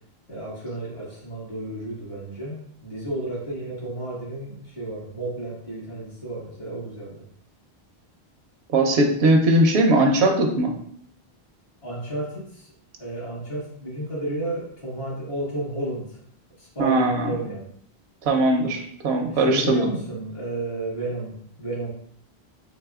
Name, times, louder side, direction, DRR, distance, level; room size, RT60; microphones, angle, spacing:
voice 1, 0.3-7.2 11.8-12.7 13.0-16.2 16.6-17.7 19.3-21.9, right 2 dB, 65° left, -5 dB, 1.9 m, -32 dB
voice 2, 8.7-10.7 16.8-17.3 18.3-19.8, right 2 dB, 80° right, 3 dB, 0.9 m, -19 dB
4.1 x 3.5 x 2.3 m, 0.65 s
omnidirectional pair, 1.1 m